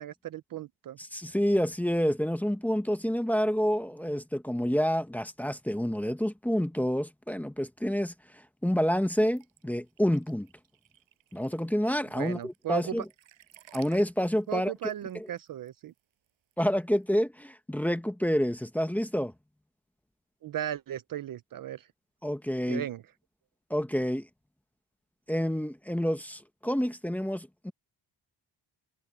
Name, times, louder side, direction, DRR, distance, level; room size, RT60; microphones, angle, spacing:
voice 1, 0.0-1.0 12.1-13.0 14.5-15.9 20.4-21.9 22.7-23.0, right 11 dB, 45° right, 0.6 m, -36 dB
voice 2, 1.1-8.1 8.6-10.5 11.3-13.0 13.7-14.7 15.1-15.3 16.6-19.3 22.2-22.8 23.7-24.3 25.3-27.7, equal, 5° left, 0.8 m, -28 dB
sound 1, 9.4-17.0, right 13 dB, 80° right, 5.5 m, -57 dB
cardioid pair, 175°, 46 cm